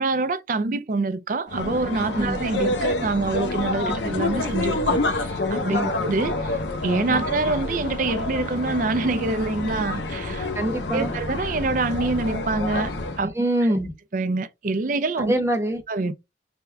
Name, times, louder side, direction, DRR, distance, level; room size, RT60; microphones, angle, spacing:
voice 1, 0.0-10.5 10.9-13.3 14.1-15.3 15.9-16.1, right 3 dB, 45° right, 0.4 m, -26 dB
sound 1, 1.5-13.3, left 2 dB, 75° left, 0.8 m, -28 dB
voice 2, 10.5-11.1 13.2-13.9 15.2-15.8, right 1 dB, 15° right, 0.8 m, -25 dB
3.5 x 2.2 x 4.4 m
head